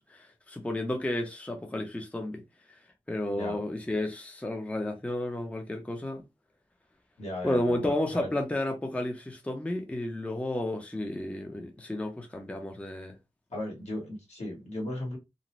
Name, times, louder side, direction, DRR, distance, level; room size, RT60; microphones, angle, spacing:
voice 1, 0.1-2.4 3.1-6.2 7.4-13.2, left 1 dB, 10° left, 0.5 m, -32 dB
voice 2, 7.2-8.3 13.5-15.2, left 1 dB, 65° left, 1.3 m, -37 dB
2.5 x 2.0 x 3.0 m
wide cardioid pair, 70°, 12 cm